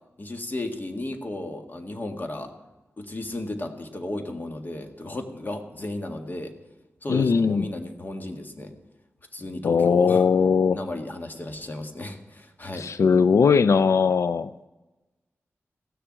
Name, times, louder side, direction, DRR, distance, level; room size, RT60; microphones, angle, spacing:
voice 1, 0.2-2.5 3.0-6.5 7.0-8.7 9.3-10.3 10.7-12.9, left 1 dB, 40° left, 5 dB, 1.8 m, -34 dB
voice 2, 7.1-7.7 9.6-10.8 12.7-14.5, left 5 dB, 80° left, 14 dB, 0.4 m, -19 dB
15.5 x 6.9 x 8.7 m, 1.1 s
wide cardioid pair, 70°, 5 cm